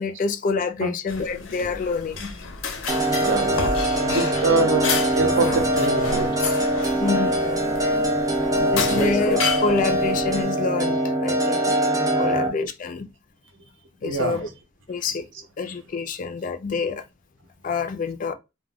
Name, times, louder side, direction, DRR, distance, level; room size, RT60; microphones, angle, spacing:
voice 1, 0.0-2.4 7.0-7.6 8.7-13.1 14.0-14.5 14.9-15.3 15.6-17.0 17.6-18.3, left 4 dB, 40° left, 0.3 m, -27 dB
sound 1, 1.1-10.4, left 4 dB, 90° left, 0.6 m, -31 dB
sound 2, 2.9-12.5, right 1 dB, 20° right, 0.5 m, -23 dB
voice 2, 3.2-3.7 4.0-6.3 8.6-9.2 12.2-12.5 14.0-14.5 15.3-15.4, right 3 dB, 70° right, 0.6 m, -25 dB
2.2 x 2.1 x 3.4 m
head